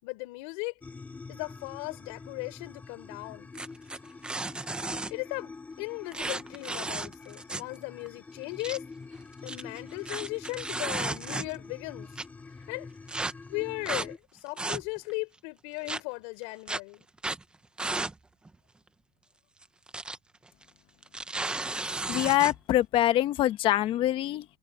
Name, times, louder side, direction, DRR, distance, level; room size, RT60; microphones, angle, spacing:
voice 1, 0.0-0.7 1.3-3.5 5.1-5.5 5.8-8.8 9.4-12.1 12.7-12.9 13.5-17.1, left 29 dB, 65° left, 3.8 m, -37 dB
sound 1, 0.8-14.2, left 4 dB, 10° left, 3.0 m, -46 dB
sound 2, 3.5-5.1 6.1-7.8 8.1-8.2 8.4-8.8 9.3-11.7 12.1-12.2 13.1-13.3 13.9-14.1 14.5-15.1 15.9-16.0 16.7-16.8 17.2-17.4 17.8-18.1 18.4-18.5 19.6-20.2 20.5-20.6 21.0-22.5, right 2 dB, 5° right, 0.8 m, -34 dB
voice 2, 22.1-24.4, left 14 dB, 40° left, 1.1 m, -24 dB
cardioid pair, 170°, 14 cm